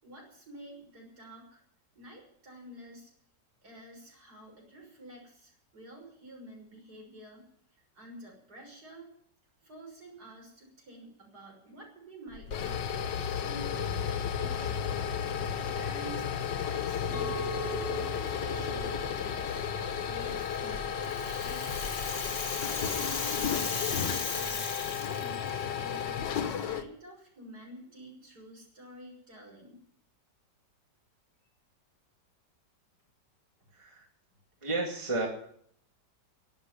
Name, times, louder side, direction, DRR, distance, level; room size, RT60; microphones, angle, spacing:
voice 1, 0.0-1.6 1.9-3.1 3.6-7.4 7.7-9.1 9.6-15.5 15.7-16.3 16.6-19.7 20.1-21.7 22.0-29.8, right 1 dB, 60° right, -1 dB, 6.8 m, -50 dB
sound 1, 12.3-26.8, left 8 dB, 80° left, 1.8 m, -33 dB
Chink clink, 17.1-21.4, right 6 dB, 15° left, 3.7 m, -43 dB
Rattle (instrument), 20.8-25.5, left 4 dB, 30° left, 1.3 m, -36 dB
voice 2, 33.7-34.1 34.6-35.3, right 2 dB, 15° right, 0 dB, 2.4 m, -32 dB
12.0 x 10.5 x 9.7 m, 0.65 s
omnidirectional pair, 1.9 m